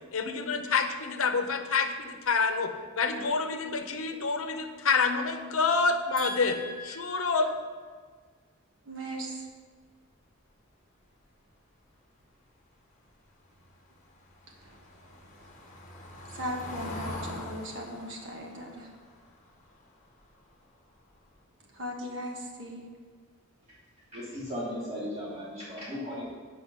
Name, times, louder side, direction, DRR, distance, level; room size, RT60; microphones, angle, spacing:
voice 1, 0.0-7.5, left 4 dB, 80° left, 6 dB, 0.8 m, -28 dB
voice 2, 6.2-7.2 8.9-9.4 16.3-18.9 21.8-22.9, equal, 60° right, 0 dB, 1.4 m, -38 dB
Car passing by / Engine, 13.6-20.5 20.9-21.1 21.4-21.5, left 1 dB, 35° left, 1.1 m, -44 dB
voice 3, 24.1-26.2, left 1 dB, 30° right, -8 dB, 2.7 m, -36 dB
8.0 x 4.9 x 6.0 m, 1.5 s
head